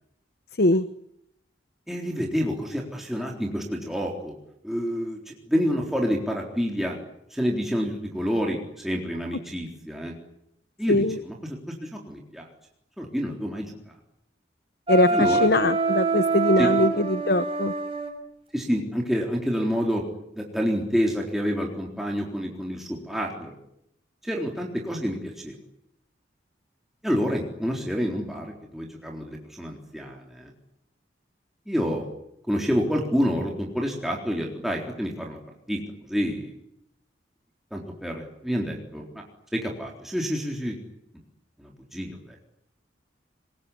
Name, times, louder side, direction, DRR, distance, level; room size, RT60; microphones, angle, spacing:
voice 1, 1.9-4.3 4.6-7.0 7.3-10.1 10.8-12.5 13.0-13.7 15.1-15.5 16.6-16.7 18.5-20.0 20.3-23.5 24.2-25.6 27.0-30.5 31.7-32.1 32.5-35.4 35.7-35.8 36.1-36.5 37.7-39.2 39.5-40.8 41.6-42.4, equal, ahead, -1 dB, 3.9 m, -28 dB
voice 2, 14.9-17.7, left 1 dB, 60° left, 13 dB, 1.0 m, -22 dB
Wind instrument woodwind instrument, 14.9-18.1, right 3 dB, 30° right, 5.6 m, -25 dB
25.5 x 21.5 x 9.9 m, 0.79 s
head